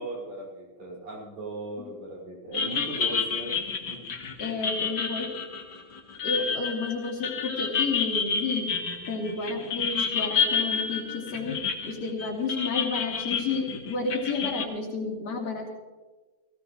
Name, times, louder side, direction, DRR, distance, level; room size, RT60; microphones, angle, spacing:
voice 1, 0.0-4.0, right 1 dB, 75° right, -6 dB, 7.0 m, -38 dB
sound 1, 2.5-14.6, left 6 dB, 80° left, 0.9 m, -30 dB
voice 2, 4.4-5.3 6.2-8.7 9.1-15.7, left 4 dB, 50° left, -4 dB, 4.1 m, -31 dB
18.0 x 16.5 x 3.1 m, 1.3 s
omnidirectional pair, 4.1 m